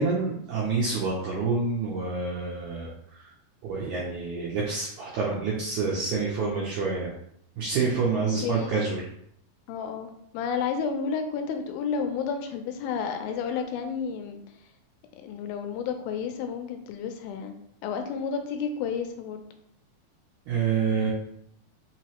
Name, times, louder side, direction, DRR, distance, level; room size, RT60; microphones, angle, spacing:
voice 1, 0.0-3.3 3.6-7.1 7.6-9.0 20.5-21.1, right 4 dB, 80° right, -5 dB, 1.7 m, -27 dB
voice 2, 9.7-14.4 15.2-17.6 17.8-19.4, left 6 dB, 85° left, 6 dB, 2.3 m, -31 dB
5.4 x 3.0 x 2.9 m, 0.70 s
omnidirectional pair, 4.3 m